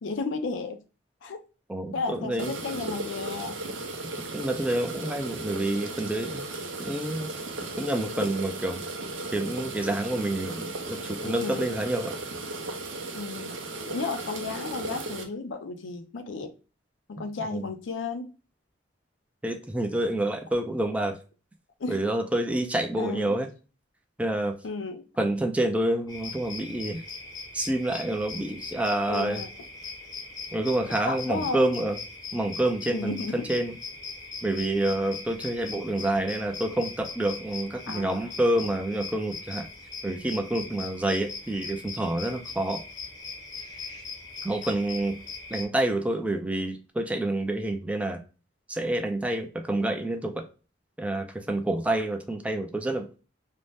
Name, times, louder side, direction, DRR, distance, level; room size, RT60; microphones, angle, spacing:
voice 1, 0.0-0.8 1.2-1.4 1.9-3.6 11.2-11.8 13.1-13.6 13.8-16.5 17.1-18.3 21.8-22.0 23.0-23.4 24.6-25.0 29.1-29.5 31.1-31.7 32.9-33.5 37.9-38.3, left 3 dB, 90° left, 0.5 m, -33 dB
voice 2, 1.7-2.5 4.3-6.4 6.8-7.3 7.8-8.8 9.3-12.2 17.5-17.6 19.4-21.2 21.9-23.5 24.2-24.6 25.2-27.0 27.5-29.4 30.5-32.0 32.3-33.7 34.4-39.7 40.0-42.8 44.4-45.2 45.5-48.2 48.7-50.5 51.0-53.2, right 1 dB, 5° right, 0.3 m, -28 dB
sound 1, 2.4-15.2, right 2 dB, 80° right, 0.6 m, -36 dB
sound 2, 26.1-45.6, left 4 dB, 20° left, 0.7 m, -40 dB
2.6 x 2.1 x 3.2 m
head